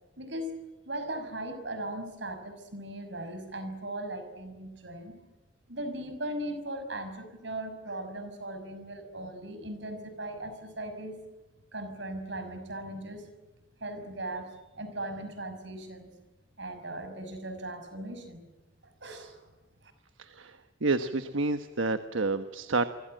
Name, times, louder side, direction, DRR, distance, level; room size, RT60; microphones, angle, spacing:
voice 1, 0.2-0.5 0.9-5.2 5.7-11.1 11.7-13.2 13.8-16.1 16.6-18.4 19.0-19.4, right 1 dB, 65° right, 8 dB, 6.0 m, -38 dB
voice 2, 20.2-22.9, right 3 dB, 85° right, 9 dB, 1.3 m, -29 dB
28.0 x 25.0 x 7.8 m, 1.2 s
head